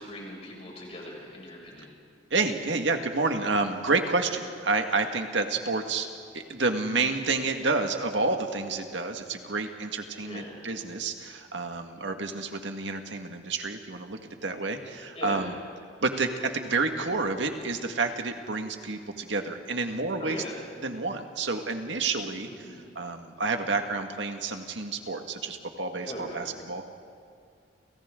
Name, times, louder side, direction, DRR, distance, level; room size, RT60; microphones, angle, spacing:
voice 1, 0.0-1.9 10.2-10.6 15.1-15.4 20.2-20.5 22.4-22.8 26.0-26.6, left 1 dB, 35° left, -3 dB, 6.7 m, -40 dB
voice 2, 2.3-6.1 6.3-15.6 16.0-20.4 20.8-22.5 23.0-26.9, right 3 dB, 80° right, 5 dB, 1.9 m, -29 dB
30.0 x 29.0 x 3.8 m, 2.4 s
head